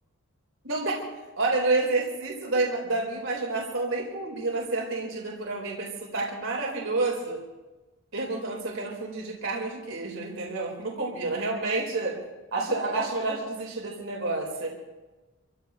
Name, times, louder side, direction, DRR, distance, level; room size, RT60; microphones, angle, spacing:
voice 1, 0.6-1.0 1.4-7.5 8.1-12.2 12.5-14.8, right 3 dB, 65° right, -1 dB, 3.9 m, -29 dB
27.5 x 15.5 x 2.9 m, 1.1 s
head